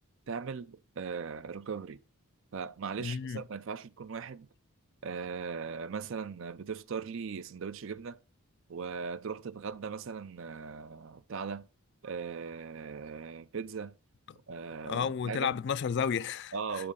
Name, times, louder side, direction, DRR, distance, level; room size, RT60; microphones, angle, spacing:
voice 1, 0.3-2.0 2.5-4.5 5.0-8.2 8.7-11.7 12.0-13.9 14.5-15.5 16.5-16.9, right 5 dB, 60° right, 0.5 m, -39 dB
voice 2, 3.0-3.4 14.3-14.4 14.8-16.8, left 7 dB, 50° left, 0.3 m, -32 dB
11.0 x 4.4 x 3.8 m
head